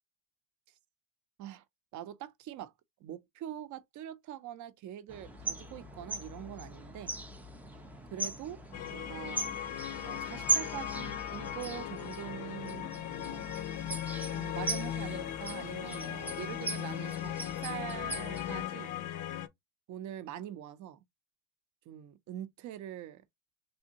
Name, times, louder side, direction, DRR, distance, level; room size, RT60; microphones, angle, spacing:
voice 1, 1.9-2.7 3.0-7.2 7.7-7.8 8.1-8.6 8.9-9.6 10.0-13.5 14.3-18.9 19.9-21.0 21.9-23.2, right 11 dB, 45° right, 0.6 m, -44 dB
sound 1, 5.1-18.7, right 2 dB, 5° right, 0.4 m, -39 dB
sound 2, 8.7-19.5, left 11 dB, 50° left, 0.5 m, -38 dB
3.5 x 2.6 x 2.8 m
cardioid pair, 120°, 41 cm